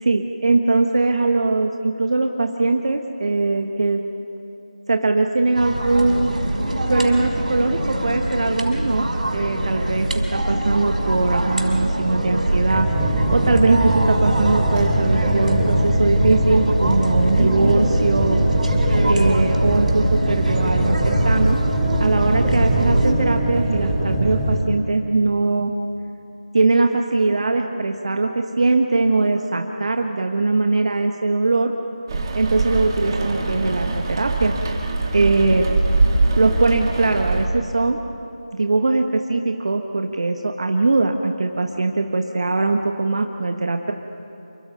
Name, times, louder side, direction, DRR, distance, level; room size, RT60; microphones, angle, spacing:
voice 1, 0.0-4.0 4.9-6.3 6.9-18.4 19.1-21.6 22.0-25.7 26.5-31.7 32.3-34.5 35.1-35.7 36.4-38.0 38.5-43.9, right 3 dB, 50° right, 4 dB, 1.2 m, -21 dB
sound 1, 5.5-23.1, right 1 dB, 65° right, 5.6 m, -23 dB
sound 2, 12.7-24.6, right 1 dB, 10° right, 3.1 m, -22 dB
Rain, 32.1-37.5, right 2 dB, 30° right, 2.6 m, -22 dB
28.5 x 24.0 x 5.7 m, 2.8 s
figure-of-eight pair, 165°, 4 cm